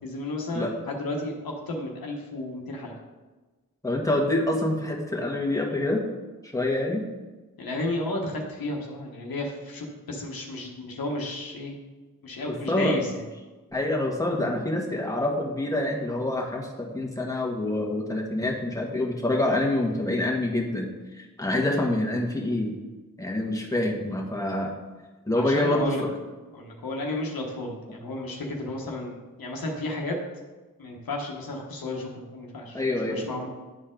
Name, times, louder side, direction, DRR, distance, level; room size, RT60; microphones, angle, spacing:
voice 1, 0.0-2.9 7.6-11.8 12.2-13.2 25.3-26.0 26.5-30.2 30.8-32.8 33.1-33.5, left 2 dB, 75° left, 0 dB, 1.3 m, -33 dB
voice 2, 3.8-6.0 6.4-7.0 12.5-13.0 13.7-22.7 23.2-24.7 25.3-26.1 32.7-33.5, left 1 dB, 10° left, -1 dB, 1.6 m, -26 dB
10.0 x 4.3 x 3.8 m, 1.2 s
cardioid pair, 45°, 36 cm